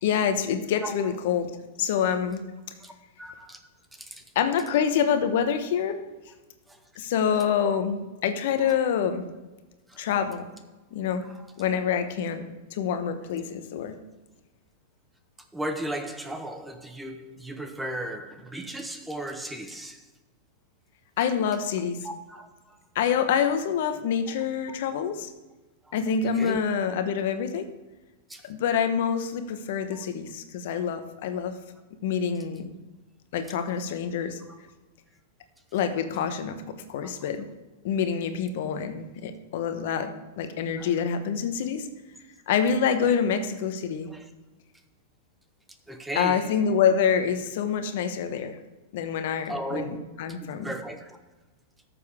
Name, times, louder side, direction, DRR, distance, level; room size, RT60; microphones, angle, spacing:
voice 1, 0.0-1.5 1.8-2.4 4.3-6.0 7.0-9.2 10.0-10.5 10.9-11.2 11.6-12.4 12.7-13.9 21.2-22.0 22.9-25.3 25.9-27.7 28.4-31.5 32.0-32.7 33.3-34.4 35.7-36.6 36.9-37.5 37.8-40.1 40.4-41.9 42.5-44.1 46.1-48.6 48.9-49.9 50.2-50.7, left 7 dB, 60° left, 1.1 m, -26 dB
voice 2, 0.8-1.1 2.8-2.9 3.2-3.6 3.9-4.2 6.7-6.8 8.6-8.7 9.9-10.0 11.2-11.4 15.5-20.1 22.0-22.8 24.3-24.4 26.2-26.6 28.3-28.5 29.9-30.1 40.8-40.9 44.1-44.3 45.9-46.5 49.5-50.4 50.6-51.2, right 1 dB, 5° right, 0.9 m, -36 dB
13.5 x 7.1 x 3.6 m
hypercardioid pair, 125°, 0 cm